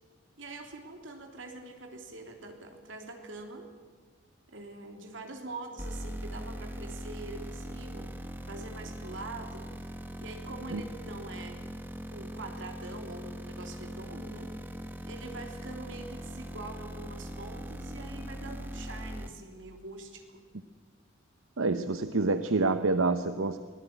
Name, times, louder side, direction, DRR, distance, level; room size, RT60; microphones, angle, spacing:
voice 1, 0.4-3.7 4.5-9.7 10.2-11.7 12.1-14.5 15.0-20.4, right 2 dB, 70° right, 4 dB, 3.4 m, -44 dB
sound 1, 5.8-19.3, equal, 10° right, 1.6 m, -41 dB
voice 2, 21.6-23.6, right 3 dB, 90° right, 10 dB, 0.8 m, -27 dB
24.0 x 17.5 x 9.1 m, 1.5 s
head